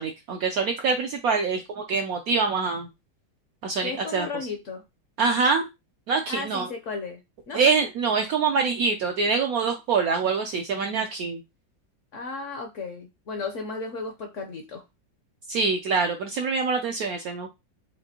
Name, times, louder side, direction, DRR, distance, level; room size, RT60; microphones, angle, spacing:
voice 1, 0.0-2.9 3.6-4.3 5.2-5.6 6.1-6.7 7.5-11.4 15.5-17.5, right 5 dB, 75° right, 4 dB, 0.8 m, -25 dB
voice 2, 3.8-4.8 6.3-7.2 7.5-7.6 12.1-14.8, left 4 dB, 60° left, 3 dB, 0.8 m, -34 dB
5.0 x 2.6 x 2.8 m, 0.23 s
omnidirectional pair, 2.0 m